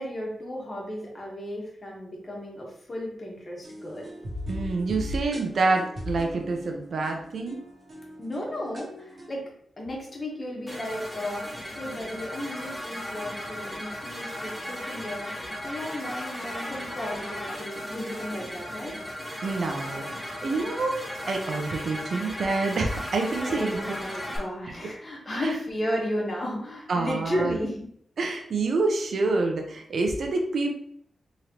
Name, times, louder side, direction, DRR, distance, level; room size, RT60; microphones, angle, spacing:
voice 1, 0.0-4.1 8.2-9.5 9.8-11.4 11.7-19.0 23.4-27.9, equal, 30° left, -2 dB, 1.2 m, -34 dB
sound 1, 3.6-9.3, left 1 dB, 40° right, 1.0 m, -39 dB
voice 2, 4.5-7.6 19.4-24.0 25.4-25.6 26.9-27.6 28.2-30.7, right 3 dB, 65° right, 3 dB, 0.7 m, -27 dB
sound 2, 10.7-24.4, equal, 5° left, 1.1 m, -36 dB
3.7 x 3.1 x 2.9 m, 0.65 s
wide cardioid pair, 125°, 0 cm